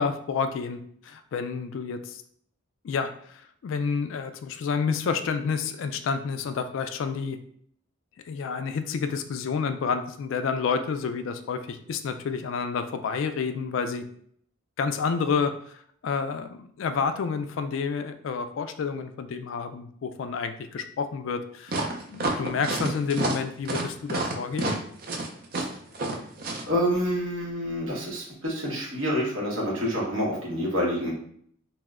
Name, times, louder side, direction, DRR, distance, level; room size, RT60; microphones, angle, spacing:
voice 1, 0.0-2.2 2.8-7.4 8.2-14.0 14.8-21.8 22.1-24.8, left 5 dB, 65° left, 9 dB, 0.3 m, -29 dB
sound 1, 21.7-26.6, right 2 dB, 45° right, 0.4 m, -29 dB
voice 2, 26.7-31.1, equal, 70° right, -3 dB, 1.1 m, -27 dB
2.9 x 2.0 x 3.5 m, 0.63 s
head